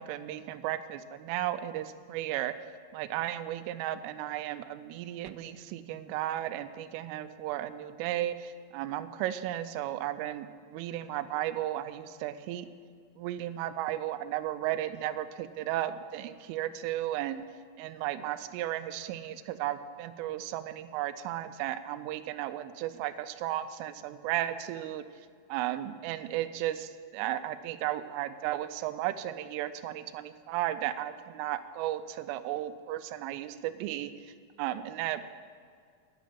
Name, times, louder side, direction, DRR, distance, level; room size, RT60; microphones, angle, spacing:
voice 1, 0.0-2.5 2.9-12.7 13.2-17.4 17.8-25.0 25.5-34.1 34.6-35.2, right 13 dB, 85° right, 12 dB, 3.2 m, -34 dB
11.5 x 10.5 x 7.5 m, 2.1 s
omnidirectional pair, 5.7 m